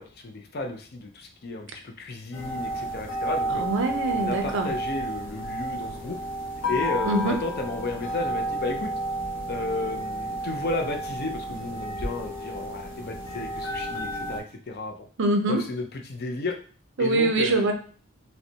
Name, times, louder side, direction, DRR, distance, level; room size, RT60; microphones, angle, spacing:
voice 1, 0.0-3.6 4.1-6.2 6.7-8.9 9.5-14.9 15.5-16.6 17.0-17.6, left 2 dB, 45° left, 4 dB, 0.6 m, -33 dB
sound 1, 2.3-14.4, right 1 dB, 70° left, 1.7 m, -31 dB
voice 2, 3.5-4.7 7.0-7.4 15.2-15.6 17.0-17.7, right 2 dB, 60° right, 4 dB, 0.6 m, -24 dB
5.5 x 2.2 x 2.8 m, 0.42 s
head